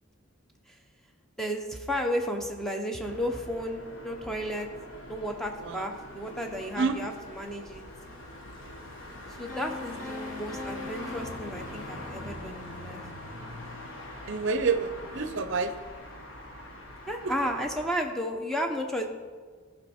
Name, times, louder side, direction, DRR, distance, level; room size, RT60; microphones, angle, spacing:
voice 1, 1.4-4.7 5.1-7.8 9.3-13.0 17.1-19.1, equal, ahead, 2 dB, 0.7 m, -33 dB
sound 1, 3.0-17.9, left 1 dB, 60° left, 1.3 m, -43 dB
Piano, 9.5-12.4, left 3 dB, 40° left, 1.3 m, -42 dB
voice 2, 14.3-15.7 17.2-17.3, right 4 dB, 55° right, 10 dB, 0.6 m, -28 dB
13.5 x 5.4 x 4.3 m, 1.6 s
head